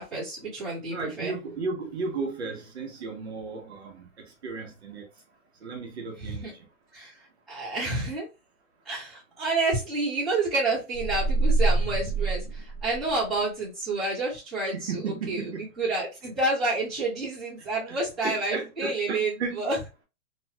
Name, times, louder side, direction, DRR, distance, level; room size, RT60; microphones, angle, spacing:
voice 1, 0.0-1.3 6.2-6.5 6.9-7.1 7.5-8.3 8.8-15.5 15.8-19.8, right 2 dB, ahead, 0.8 m, -29 dB
voice 2, 0.9-5.1 5.6-6.7 14.6-15.7 17.9-18.0 18.2-19.6, right 4 dB, 50° right, 0.9 m, -34 dB
sound 1, 10.9-13.4, right 3 dB, 55° left, 0.9 m, -25 dB
2.9 x 2.3 x 2.7 m
hypercardioid pair, 180°, 42 cm